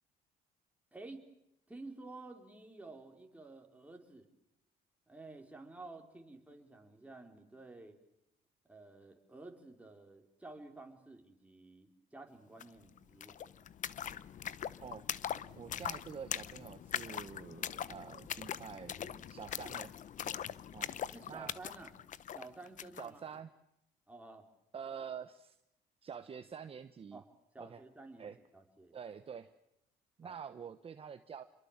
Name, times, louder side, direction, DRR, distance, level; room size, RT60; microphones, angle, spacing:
voice 1, 0.9-1.2 1.7-4.3 5.1-8.0 8.6-13.5 21.1-21.9 22.3-23.3 24.1-24.5 27.1-27.3 27.5-29.0 30.2-30.4, right 2 dB, 10° right, 2 dB, 4.3 m, -52 dB
sound 1, 12.6-12.7 12.9-23.1, left 9 dB, 50° left, 0.9 m, -42 dB
voice 2, 15.5-19.9 20.7-20.9 21.3-21.5 23.0-23.5 24.7-25.6 26.0-27.2 27.6-27.8 28.2-28.4 28.9-29.5 30.2-31.4, right 7 dB, 35° right, 9 dB, 1.1 m, -47 dB
28.0 x 22.5 x 7.4 m, 0.85 s
cardioid pair, 110°, 17 cm